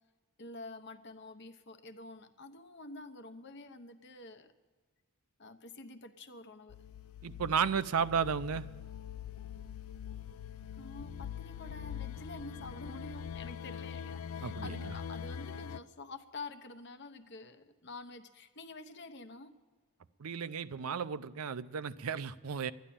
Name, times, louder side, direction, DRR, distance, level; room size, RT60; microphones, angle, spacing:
voice 1, 0.4-4.5 5.4-6.8 10.7-19.5, left 2 dB, 50° left, 9 dB, 0.9 m, -48 dB
sound 1, 6.7-15.8, left 8 dB, 75° left, 0.4 m, -43 dB
voice 2, 7.2-8.7 14.4-14.8 20.2-22.7, right 6 dB, 80° right, 14 dB, 0.5 m, -33 dB
12.5 x 10.5 x 8.7 m, 1.4 s
head